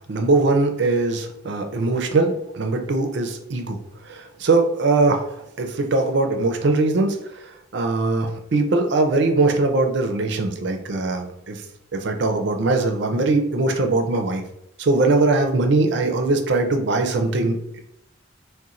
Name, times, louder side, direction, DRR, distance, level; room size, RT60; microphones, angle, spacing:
voice 1, 0.1-3.8 4.1-5.3 5.6-7.2 7.7-11.6 11.9-14.4 14.8-17.6, right 3 dB, 65° right, 5 dB, 0.4 m, -21 dB
4.0 x 2.1 x 2.5 m, 0.76 s
head